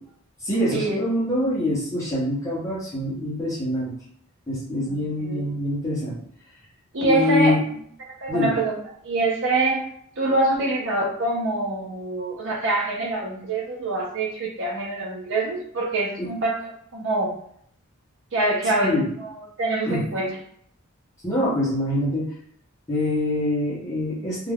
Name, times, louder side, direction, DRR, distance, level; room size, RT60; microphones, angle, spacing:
voice 1, 0.4-3.9 4.5-6.2 7.0-7.6 8.3-8.5 16.2-16.3 18.8-19.1 19.9-20.0 21.2-22.3 22.9-24.5, left 1 dB, 15° left, -8 dB, 0.7 m, -24 dB
voice 2, 6.9-7.6 8.1-8.8 9.0-9.9 10.2-17.4 18.3-20.3, right 2 dB, 60° right, -1 dB, 0.6 m, -25 dB
2.3 x 2.2 x 3.4 m, 0.65 s
head